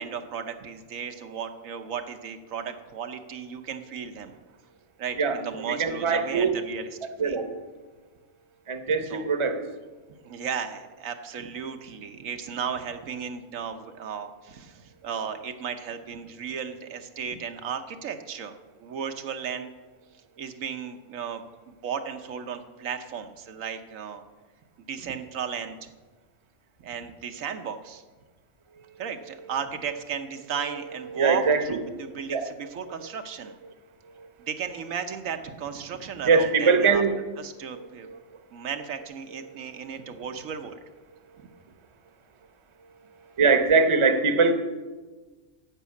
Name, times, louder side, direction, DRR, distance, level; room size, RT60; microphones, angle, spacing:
voice 1, 0.0-4.3 5.0-6.9 7.2-7.4 9.0-9.3 10.2-19.7 20.4-24.2 24.9-25.9 26.8-28.0 29.0-33.5 34.4-37.0 37.4-38.1 38.5-40.7, right 7 dB, 85° right, 7 dB, 1.2 m, -35 dB
voice 2, 5.2-6.5 7.2-7.5 8.7-9.6 31.1-32.5 33.0-33.1 34.2-34.3 36.3-37.3 37.7-37.8 38.1-38.2 39.5-39.6 43.4-44.5, right 4 dB, 30° right, 8 dB, 0.8 m, -23 dB
11.5 x 6.2 x 8.3 m, 1.3 s
omnidirectional pair, 1.4 m